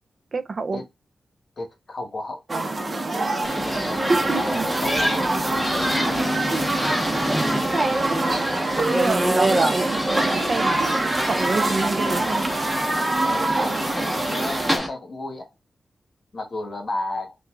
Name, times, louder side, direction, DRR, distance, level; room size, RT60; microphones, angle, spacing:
voice 1, 0.3-0.8 4.0-4.7 6.5-6.6 8.0-8.5 8.9-10.8 11.3-12.5, right 3 dB, 50° right, 0.4 m, -27 dB
voice 2, 1.6-2.4 3.5-5.3 5.8-6.5 7.5-7.7 13.3-15.5 16.3-17.4, left 2 dB, 50° left, 1.3 m, -34 dB
sound 1, 2.5-14.8, right 2 dB, 35° right, 0.8 m, -25 dB
sound 2, 3.4-14.9, equal, 5° left, 1.2 m, -27 dB
5.8 x 2.4 x 2.3 m
wide cardioid pair, 105°, 0 cm